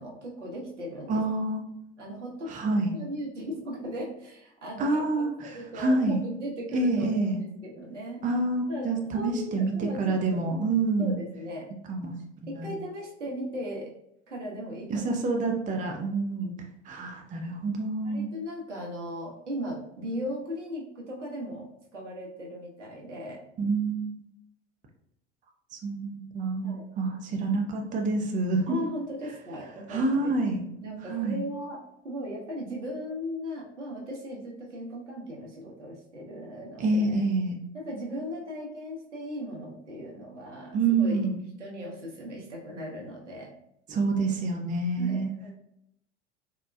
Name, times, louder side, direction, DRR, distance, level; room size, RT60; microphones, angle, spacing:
voice 1, 0.0-1.2 2.0-2.5 2.9-5.0 5.4-8.2 8.7-10.5 11.0-11.7 12.5-13.9 14.3-15.1 18.0-23.4 26.6-26.9 28.7-30.3 30.8-37.2 37.7-41.2 41.6-43.5 45.0-45.5, equal, 85° right, -3 dB, 0.9 m, -37 dB
voice 2, 1.1-1.6 2.5-2.9 4.8-6.2 6.7-7.4 8.2-11.2 11.9-12.1 12.4-12.7 14.9-16.5 16.9-18.3 23.6-24.2 25.8-28.8 29.9-30.6 31.1-31.4 36.8-37.5 40.7-41.4 43.9-45.3, right 3 dB, 20° right, 2 dB, 0.5 m, -27 dB
4.1 x 2.2 x 2.3 m, 0.77 s
figure-of-eight pair, 75°, 35 cm